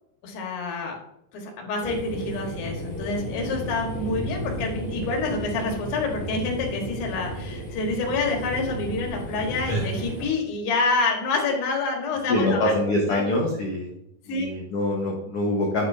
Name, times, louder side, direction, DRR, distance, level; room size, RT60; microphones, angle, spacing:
voice 1, 0.2-0.9 1.3-12.7 13.1-13.3 14.3-14.5, left 3 dB, 65° left, 0 dB, 3.2 m, -27 dB
sound 1, 1.8-10.3, equal, 5° left, 1.0 m, -33 dB
voice 2, 12.3-13.9 14.3-15.9, left 1 dB, 85° left, -2 dB, 1.3 m, -24 dB
9.3 x 7.0 x 2.7 m, 0.77 s
omnidirectional pair, 4.7 m